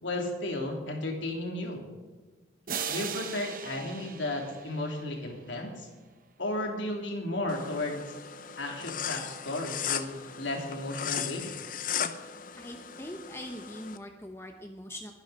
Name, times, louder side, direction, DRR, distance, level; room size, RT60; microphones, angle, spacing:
voice 1, 0.0-1.9 2.9-5.9 6.4-8.0 8.6-11.5, left 1 dB, 80° left, 1 dB, 3.2 m, -34 dB
sound 1, 2.7-5.5, right 7 dB, 45° right, 0.9 m, -38 dB
sound 2, 7.5-14.0, left 8 dB, 45° left, 0.7 m, -37 dB
voice 2, 12.6-15.1, left 1 dB, 15° left, 4 dB, 1.0 m, -42 dB
22.0 x 10.5 x 4.3 m, 1.3 s
head